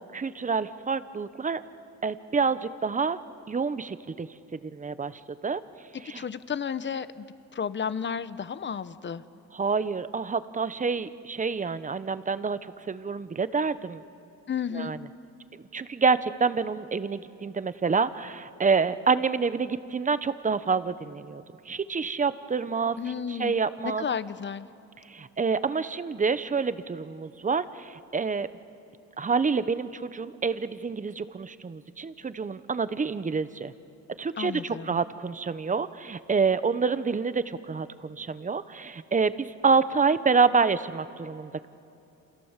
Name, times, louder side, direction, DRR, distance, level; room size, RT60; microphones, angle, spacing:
voice 1, 0.1-1.6 2.0-3.2 3.5-5.6 6.0-6.2 9.5-12.6 12.9-14.0 14.7-15.0 15.7-23.0 23.3-24.0 25.1-28.5 29.2-33.7 34.2-41.7, right 5 dB, 25° right, 13 dB, 1.0 m, -27 dB
voice 2, 5.9-7.3 7.5-9.2 14.5-14.9 23.0-23.6 23.8-24.7 34.4-35.0, left 7 dB, 40° left, 14 dB, 1.0 m, -32 dB
28.0 x 28.0 x 7.4 m, 2.7 s
cardioid pair, 90°, 30 cm